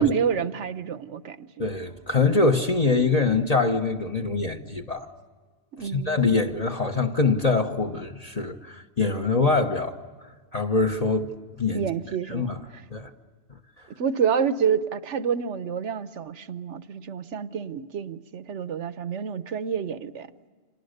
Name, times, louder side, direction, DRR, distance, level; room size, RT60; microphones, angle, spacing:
voice 1, 0.0-1.5 5.8-6.3 11.7-12.8 14.0-20.3, right 7 dB, 80° right, 1.3 m, -28 dB
voice 2, 1.6-5.1 5.8-9.9 10.5-11.9 12.3-12.6 12.9-13.1, left 3 dB, 35° left, 1.3 m, -24 dB
29.5 x 27.0 x 6.7 m
omnidirectional pair, 1.2 m